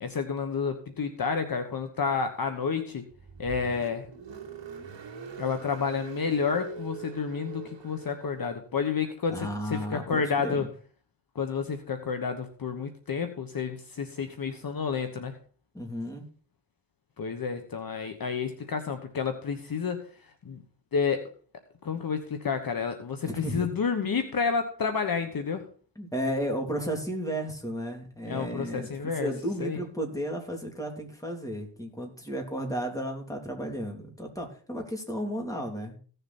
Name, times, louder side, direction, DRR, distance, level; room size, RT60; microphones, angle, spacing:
voice 1, 0.0-3.0 3.4-4.1 5.4-10.7 11.3-15.4 17.2-20.0 20.4-20.6 20.9-21.3 21.8-25.7 28.3-29.3 29.6-29.8, left 5 dB, 50° left, 7 dB, 1.3 m, -30 dB
Car, 3.1-8.5, right 6 dB, 70° right, 2.4 m, -42 dB
voice 2, 9.3-10.7 15.7-16.2 23.2-23.7 26.0-36.0, equal, 5° left, 2 dB, 3.1 m, -33 dB
16.0 x 6.9 x 4.3 m, 0.42 s
wide cardioid pair, 105°, 45 cm